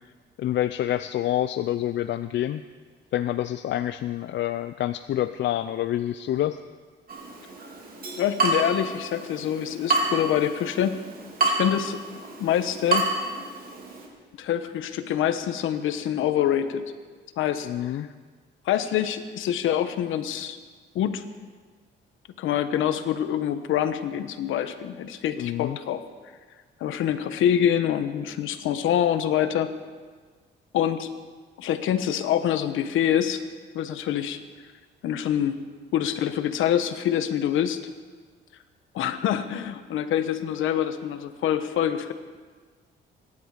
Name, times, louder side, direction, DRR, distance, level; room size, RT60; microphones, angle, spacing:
voice 1, 0.4-2.6 3.1-6.6 17.6-18.1 25.4-25.8, left 12 dB, 65° left, 11 dB, 0.5 m, -27 dB
Water tap faucet / Drip, 7.1-14.1, right 2 dB, 45° right, 3.4 m, -29 dB
voice 2, 8.2-10.9 11.4-12.0 12.4-13.1 14.4-16.8 17.4-18.0 18.6-20.6 20.9-21.2 22.4-26.0 26.8-29.7 30.7-31.1 31.6-33.4 33.7-34.4 35.0-35.5 35.9-37.8 38.9-42.1, left 10 dB, 85° left, 10 dB, 1.2 m, -25 dB
25.5 x 11.0 x 5.0 m, 1.5 s
cardioid pair, 90°, 20 cm